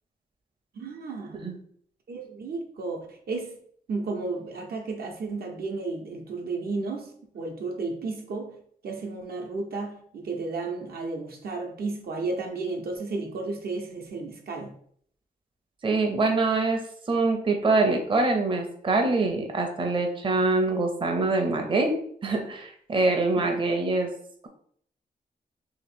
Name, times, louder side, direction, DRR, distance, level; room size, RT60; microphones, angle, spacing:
voice 1, 0.7-1.5 2.1-3.6 3.9-8.6 8.8-14.7 23.3-23.5, right 3 dB, 75° right, 2 dB, 0.8 m, -33 dB
voice 2, 15.8-16.8 17.1-24.1, right 3 dB, 30° right, 3 dB, 0.6 m, -24 dB
2.9 x 2.9 x 4.2 m, 0.62 s
wide cardioid pair, 115°, 16 cm